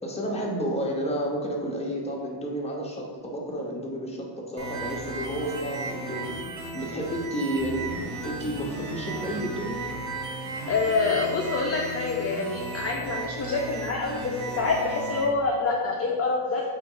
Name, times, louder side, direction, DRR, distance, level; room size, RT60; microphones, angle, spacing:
voice 1, 0.0-6.5 6.7-9.8, equal, 15° left, -2 dB, 0.8 m, -31 dB
sound 1, 4.6-15.2, right 2 dB, 35° right, 0.9 m, -35 dB
voice 2, 10.7-16.6, left 4 dB, 30° left, -1 dB, 0.4 m, -26 dB
4.5 x 3.0 x 3.8 m, 1.5 s
cardioid pair, 110°, 50 cm